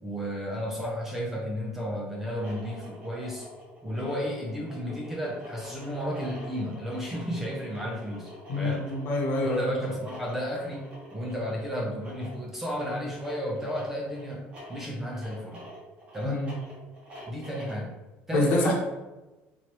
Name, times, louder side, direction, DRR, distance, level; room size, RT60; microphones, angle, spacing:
voice 1, 0.0-3.5 3.8-8.9 9.4-15.6 16.1-16.5 17.3-17.9 18.3-18.7, equal, 10° right, -2 dB, 0.6 m, -33 dB
sound 1, 2.2-17.9, equal, 30° right, 1.3 m, -46 dB
voice 2, 8.5-9.9 16.2-16.6 18.3-18.7, left 2 dB, 50° left, -2 dB, 1.1 m, -26 dB
4.3 x 3.1 x 3.0 m, 1.1 s
cardioid pair, 160°, 4 cm